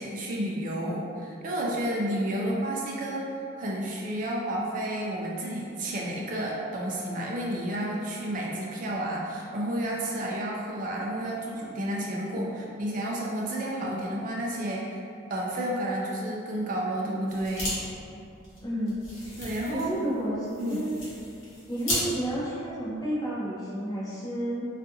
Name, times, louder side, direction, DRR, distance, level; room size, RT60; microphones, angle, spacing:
voice 1, 0.0-15.0 15.3-17.8 19.4-20.0 20.6-20.9, right 1 dB, 40° right, -3 dB, 0.4 m, -31 dB
sound 1, 17.3-17.7 18.0-18.1 18.4-22.0, equal, 70° left, 0.9 m, -35 dB
voice 2, 18.6-19.0 19.7-21.0 21.7-24.6, right 1 dB, 20° left, -9 dB, 0.7 m, -31 dB
2.4 x 2.4 x 2.6 m, 2.5 s
head